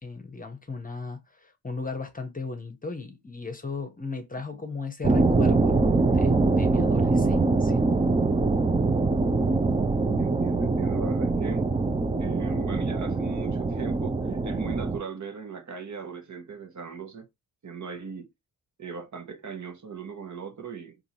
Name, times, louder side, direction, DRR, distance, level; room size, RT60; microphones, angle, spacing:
voice 1, 0.0-7.8, left 4 dB, 20° left, 0.9 m, -37 dB
sound 1, 5.0-15.0, right 3 dB, 15° right, 0.6 m, -23 dB
voice 2, 10.2-11.7 12.2-17.2 17.6-18.3 18.8-21.0, right 6 dB, 45° right, 1.1 m, -38 dB
3.8 x 2.7 x 2.8 m
cardioid pair, 60°, 39 cm